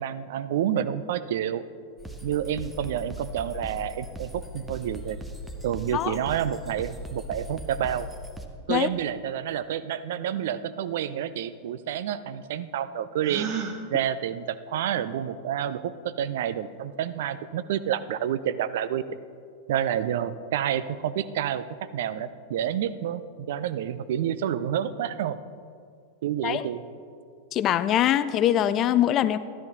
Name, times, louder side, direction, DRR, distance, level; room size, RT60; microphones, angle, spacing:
voice 1, 0.0-1.6 2.2-5.2 5.6-8.1 8.7-13.5 13.9-19.2 19.7-21.6 21.9-25.4 26.2-26.8, right 10 dB, 55° right, 14 dB, 0.5 m, -29 dB
sound 1, 2.0-8.5, equal, 5° right, 1.0 m, -39 dB
Gasp, 13.2-13.8, right 7 dB, 40° right, 1.3 m, -31 dB
voice 2, 27.5-29.4, left 11 dB, 35° left, 14 dB, 0.4 m, -23 dB
13.0 x 12.5 x 4.0 m, 2.3 s
figure-of-eight pair, 90°, 0 cm